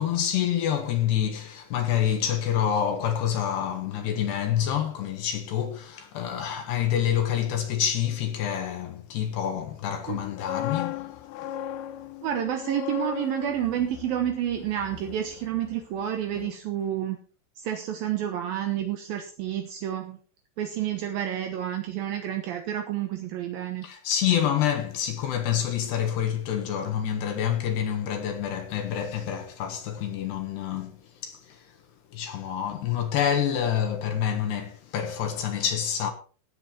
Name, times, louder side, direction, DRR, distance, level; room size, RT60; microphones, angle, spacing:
voice 1, 0.0-11.1 23.8-31.0 31.2-31.7 32.1-36.1, left 9 dB, 70° left, 3.1 m, -27 dB
sound 1, 10.1-16.0 16.3-16.6, left 11 dB, 85° left, 2.1 m, -37 dB
voice 2, 12.2-17.2 17.6-20.2 20.6-23.9, right 10 dB, 75° right, 2.2 m, -29 dB
18.0 x 8.1 x 4.4 m
omnidirectional pair, 5.7 m